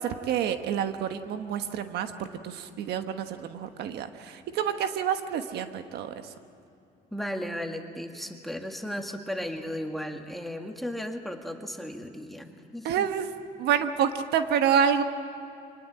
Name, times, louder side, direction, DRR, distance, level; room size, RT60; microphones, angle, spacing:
voice 1, 0.0-6.1 12.8-13.3 13.6-15.0, right 8 dB, 75° right, 8 dB, 1.3 m, -28 dB
voice 2, 7.1-13.1, equal, ahead, 3 dB, 1.9 m, -35 dB
25.0 x 19.0 x 8.7 m, 2.6 s
cardioid pair, 110°, 17 cm